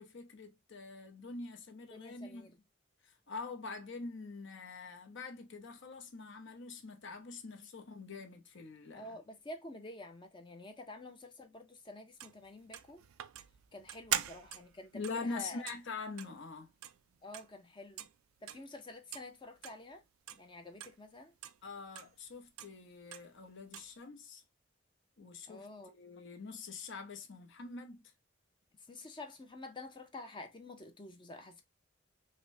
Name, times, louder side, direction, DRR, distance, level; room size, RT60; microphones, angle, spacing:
voice 1, 0.0-2.5 3.0-9.2 14.1-14.3 14.9-16.7 21.6-24.4 25.2-25.7 25.9-28.1, left 4 dB, 60° left, 0.8 m, -45 dB
voice 2, 1.9-2.6 8.9-13.0 13.7-15.7 17.2-18.1 18.4-20.0 20.4-21.3 25.5-25.9 28.9-31.6, left 2 dB, 25° left, 0.5 m, -49 dB
sound 1, 12.2-17.7 18.0-18.1 18.5-18.7 19.1-19.3 19.6-19.8 20.3-20.4 20.8-21.0 21.4-21.6 22.0-22.1 22.6-22.7 23.1-23.3 23.7-23.9, right 11 dB, 85° right, 0.4 m, -42 dB
5.0 x 2.1 x 2.6 m
head